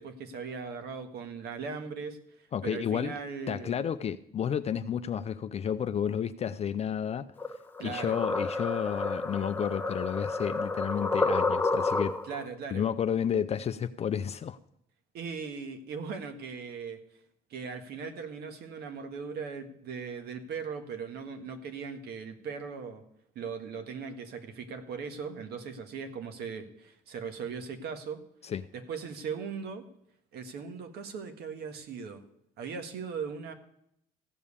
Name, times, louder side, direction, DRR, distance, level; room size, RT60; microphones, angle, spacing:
voice 1, 0.0-3.8 7.8-8.2 12.2-12.8 15.1-17.0 17.5-23.0 23.4-28.2 28.7-29.9 30.3-32.2 32.6-33.5, right 5 dB, 70° right, 1.7 m, -39 dB
voice 2, 2.5-3.1 3.5-7.3 7.8-12.2 12.7-14.6 28.4-28.7, left 8 dB, 40° left, 0.5 m, -31 dB
sound 1, 7.4-12.5, left 3 dB, 10° left, 1.2 m, -30 dB
15.0 x 5.4 x 8.4 m
cardioid pair, 110°, 17 cm